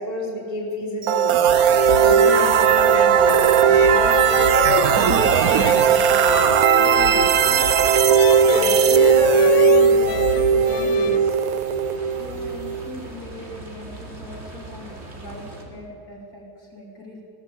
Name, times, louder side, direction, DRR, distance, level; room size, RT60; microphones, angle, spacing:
voice 1, 0.0-1.5 2.0-7.7 8.5-11.3, left 1 dB, 20° left, -4 dB, 3.9 m, -31 dB
sound 1, 1.0-12.9, right 7 dB, 60° right, 1.1 m, -17 dB
sound 2, 1.5-11.2, left 12 dB, 80° left, 1.3 m, -29 dB
voice 2, 1.9-2.2 12.2-17.2, left 2 dB, 50° left, -3 dB, 4.5 m, -40 dB
sound 3, 2.4-15.7, right 2 dB, 35° right, 3.0 m, -40 dB
19.5 x 15.5 x 8.9 m, 2.8 s
omnidirectional pair, 2.0 m